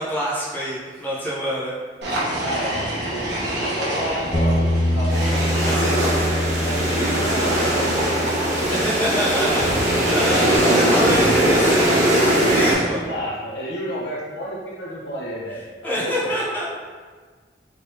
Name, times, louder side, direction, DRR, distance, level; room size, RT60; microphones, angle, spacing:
voice 1, 0.0-1.8 2.1-2.2 5.6-6.0 8.7-13.0 15.8-16.7, equal, 10° left, -8 dB, 0.7 m, -26 dB
sound 1, 2.0-5.7 6.7-13.1, right 1 dB, 75° right, 1.0 m, -28 dB
voice 2, 2.4-6.2 6.6-8.3 10.2-11.0 13.1-16.1, equal, 75° left, -6 dB, 1.1 m, -30 dB
Bass guitar, 4.3-10.6, left 1 dB, 40° left, 0.4 m, -25 dB
sound 2, 5.1-12.7, right 1 dB, 40° right, 1.5 m, -20 dB
3.6 x 3.5 x 2.7 m, 1.5 s
head